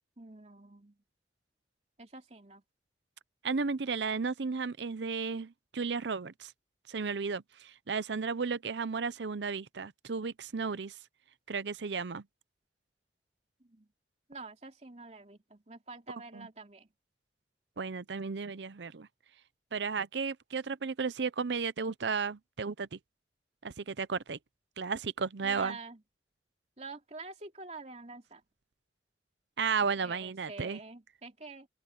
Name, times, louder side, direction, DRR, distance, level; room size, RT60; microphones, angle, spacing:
voice 1, 0.2-1.0 2.0-2.6 13.6-13.9 14.3-16.9 25.4-26.0 26.8-28.4 30.0-31.7, right 3 dB, 40° right, 3.0 m, -47 dB
voice 2, 3.4-6.5 6.9-11.0 11.5-12.2 16.3-16.5 17.8-19.1 19.7-23.0 23.6-24.4 24.8-25.8 29.6-30.8, right 5 dB, 85° right, 0.7 m, -34 dB
open air
head